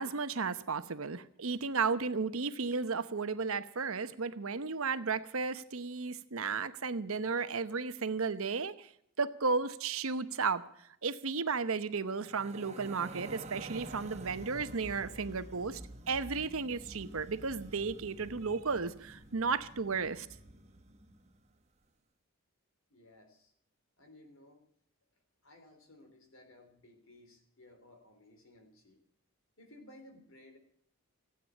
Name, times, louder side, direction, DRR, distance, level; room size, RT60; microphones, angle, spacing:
voice 1, 0.0-8.9 9.2-10.6 11.0-15.8 16.1-20.3, right 4 dB, 70° right, 12 dB, 0.9 m, -34 dB
sound 1, 12.1-21.4, right 2 dB, 30° right, 1.1 m, -49 dB
voice 2, 22.9-23.5 24.0-24.6 25.4-29.0 29.6-30.6, left 1 dB, 65° left, 6 dB, 3.5 m, -58 dB
16.5 x 8.9 x 8.2 m, 0.70 s
head